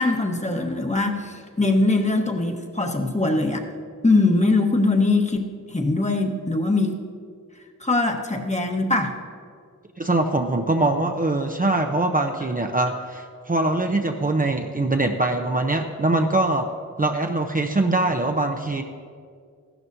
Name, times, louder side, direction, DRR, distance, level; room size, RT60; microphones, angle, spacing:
voice 1, 0.0-3.6 4.0-7.0 7.8-9.2, left 2 dB, 20° left, 3 dB, 1.1 m, -22 dB
voice 2, 10.0-16.7 17.0-18.8, right 2 dB, 25° right, 4 dB, 0.7 m, -23 dB
14.0 x 12.0 x 2.7 m, 2.1 s
wide cardioid pair, 60°, 32 cm